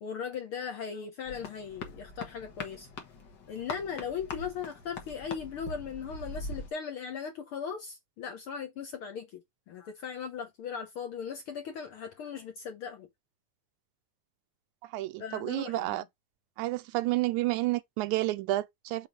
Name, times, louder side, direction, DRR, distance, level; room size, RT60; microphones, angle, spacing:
voice 1, 0.0-2.9 3.5-9.4 9.7-13.1 15.2-16.1, left 7 dB, 65° left, 1.4 m, -38 dB
sound 1, 1.3-6.7, left 3 dB, 45° left, 1.8 m, -42 dB
voice 2, 14.9-16.0 16.6-19.1, right 17 dB, 85° right, 2.0 m, -30 dB
7.4 x 3.7 x 5.2 m
omnidirectional pair, 3.5 m